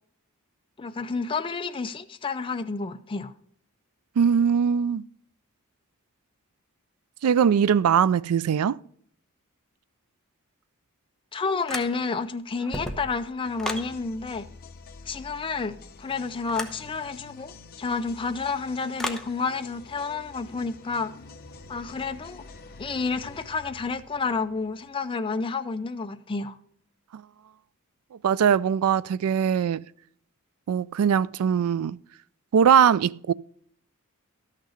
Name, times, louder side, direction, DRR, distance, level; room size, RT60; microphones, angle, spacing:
voice 1, 0.8-3.3 11.3-14.5 15.1-21.1 21.7-22.4 22.8-26.6, left 4 dB, 25° left, 0.4 m, -30 dB
voice 2, 4.2-5.0 7.2-8.8 27.1-27.2 28.2-29.8 30.7-32.0 32.5-33.3, right 7 dB, 75° right, 0.3 m, -21 dB
sound 1, 11.7-12.2 12.6-13.9 16.5-16.8 19.0-19.3, left 1 dB, ahead, 0.9 m, -33 dB
sound 2, 13.4-25.2, left 3 dB, 45° left, 1.1 m, -48 dB
12.5 x 6.6 x 4.9 m
head